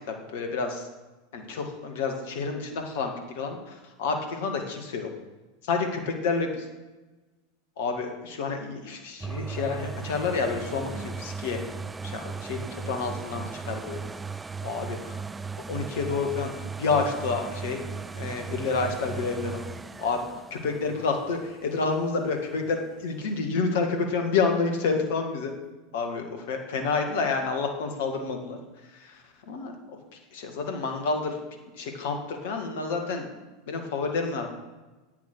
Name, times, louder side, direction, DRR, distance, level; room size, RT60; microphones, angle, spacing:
voice 1, 0.1-0.9 1.3-5.1 5.6-6.7 7.8-11.6 12.0-14.0 14.6-15.2 15.7-17.8 18.2-19.6 20.0-25.5 25.9-28.6 28.9-30.0 30.3-31.4 31.7-33.3 33.7-34.5, left 4 dB, 60° left, 4 dB, 1.9 m, -29 dB
sound 1, 9.2-22.9 23.4-23.5, right 5 dB, 15° right, 0.4 m, -37 dB
10.5 x 8.9 x 6.3 m, 1.2 s
figure-of-eight pair, 85°, 0 cm